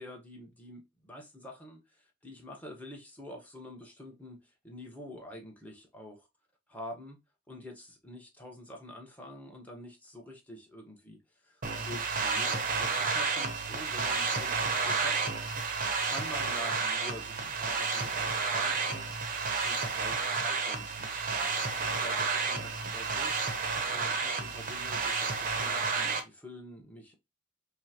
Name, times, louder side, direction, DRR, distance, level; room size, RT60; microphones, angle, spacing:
voice 1, 0.0-6.3 6.7-7.2 7.5-15.2 16.0-19.1 19.6-23.3 23.9-27.2, left 1 dB, 10° left, 1.0 m, -47 dB
sound 1, 11.6-26.2, right 4 dB, 45° right, 0.7 m, -31 dB
5.4 x 2.1 x 2.9 m
head